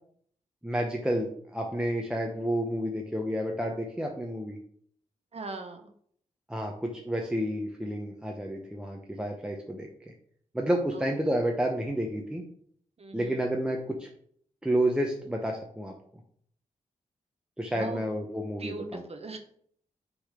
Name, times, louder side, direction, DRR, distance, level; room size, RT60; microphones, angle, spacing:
voice 1, 0.6-4.6 6.5-10.1 10.5-12.4 13.1-14.1 14.6-15.9 17.6-19.0, right 1 dB, 5° right, 1 dB, 0.9 m, -30 dB
voice 2, 5.3-5.9 10.9-11.1 13.0-13.4 17.7-18.0 18.6-19.4, right 3 dB, 45° right, 5 dB, 0.9 m, -39 dB
6.2 x 4.0 x 4.9 m, 0.63 s
cardioid pair, 70°, 14 cm